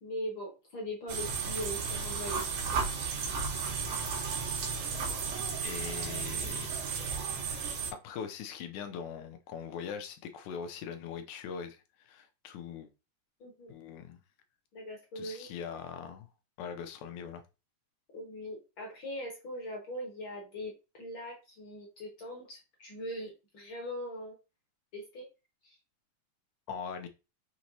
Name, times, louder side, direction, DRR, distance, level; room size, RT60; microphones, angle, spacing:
voice 1, 0.0-2.5 2.7-3.2 13.4-13.7 14.7-15.5 18.1-24.4 24.9-25.3 25.6-25.8, equal, 55° left, 1.5 m, -41 dB
sound 1, 1.1-7.9, right 5 dB, 85° right, 2.7 m, -34 dB
voice 2, 5.6-6.7 7.9-12.9 13.7-14.2 15.2-16.3 16.6-17.4 26.7-27.1, left 7 dB, 80° left, 2.2 m, -41 dB
6.1 x 2.9 x 2.8 m
omnidirectional pair, 3.5 m